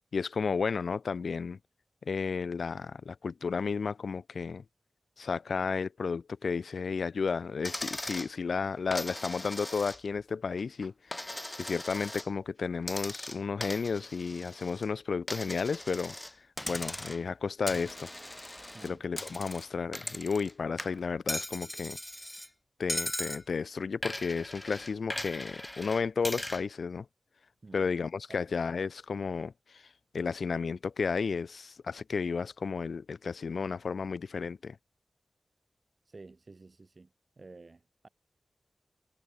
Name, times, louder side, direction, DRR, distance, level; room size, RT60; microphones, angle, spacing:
voice 1, 0.1-1.6 2.1-4.6 5.2-11.3 11.6-16.1 16.7-18.1 18.8-22.0 22.8-27.1 27.7-29.8 30.1-34.8, left 5 dB, 85° left, 0.4 m, -33 dB
Coin (dropping), 7.6-8.3 8.9-10.2 10.6-12.3 12.8-14.9 15.3-16.3 16.6-17.3 17.7-20.5 20.8-22.5 22.9-23.4 24.0-26.6, left 1 dB, 15° left, 1.1 m, -39 dB
voice 2, 36.0-37.1 37.4-38.1, right 3 dB, 50° right, 5.1 m, -51 dB
wide cardioid pair, 70°, 0 cm